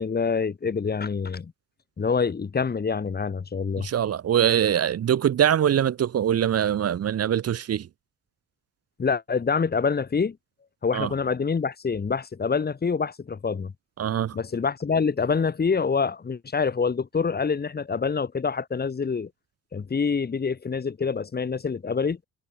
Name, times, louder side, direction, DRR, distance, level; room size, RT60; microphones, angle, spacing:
voice 1, 0.0-1.5 2.0-3.9 9.0-10.4 10.8-13.7 14.3-19.3 19.7-22.2, left 5 dB, 30° left, 2.0 m, -26 dB
voice 2, 3.8-7.9 10.9-11.1 14.0-14.4, right 9 dB, 55° right, 1.2 m, -23 dB
cardioid pair, 90°, 30 cm